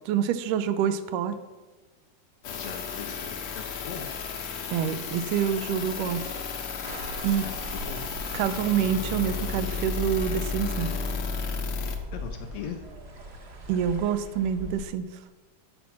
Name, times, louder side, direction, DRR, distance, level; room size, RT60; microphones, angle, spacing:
voice 1, 0.1-1.4 4.7-6.3 7.2-7.5 8.3-10.9 13.7-15.1, right 8 dB, 80° right, 11 dB, 2.1 m, -27 dB
sound 1, 2.4-12.0, left 5 dB, 65° left, 1.4 m, -33 dB
voice 2, 2.6-4.1 7.4-8.1 12.1-12.8, left 7 dB, 80° left, 5 dB, 1.4 m, -39 dB
sound 2, 6.8-14.9, equal, 45° right, 1.5 m, -42 dB
14.0 x 6.1 x 5.7 m, 1.2 s
omnidirectional pair, 3.9 m